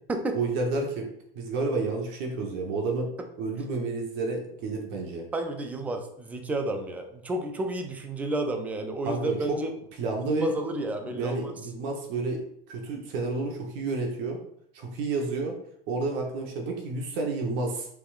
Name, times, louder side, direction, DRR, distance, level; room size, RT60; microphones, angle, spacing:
voice 1, 0.3-1.1 1.3-3.1 3.4-5.2 9.0-9.6 10.0-10.5 11.0-12.4 12.7-14.4 14.7-15.6 15.9-17.9, right 3 dB, 40° right, 1 dB, 1.0 m, -30 dB
voice 2, 5.3-9.7 10.3-11.5, right 1 dB, 5° right, 5 dB, 0.3 m, -31 dB
5.9 x 3.4 x 2.4 m, 0.69 s
hypercardioid pair, 120°, 30 cm